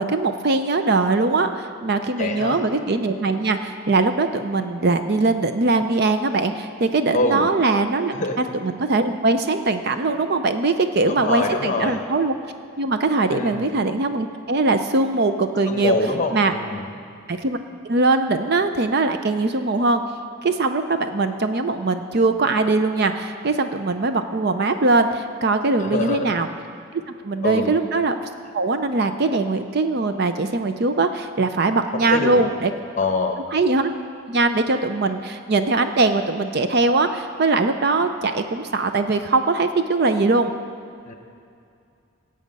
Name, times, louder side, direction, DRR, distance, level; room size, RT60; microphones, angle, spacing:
voice 1, 0.0-12.3 12.8-16.0 16.3-16.5 17.3-17.6 17.8-20.0 20.4-26.5 27.2-28.2 28.5-32.7 33.5-33.9 34.3-40.5, right 3 dB, 50° right, 8 dB, 0.5 m, -21 dB
voice 2, 2.2-2.6 7.1-7.5 8.1-8.5 11.1-12.0 13.3-13.7 15.7-16.9 25.8-26.3 27.4-27.7 31.9-32.4 33.0-33.4 41.1-41.2, left 2 dB, 35° left, 4 dB, 1.1 m, -24 dB
17.5 x 7.8 x 5.4 m, 2.4 s
head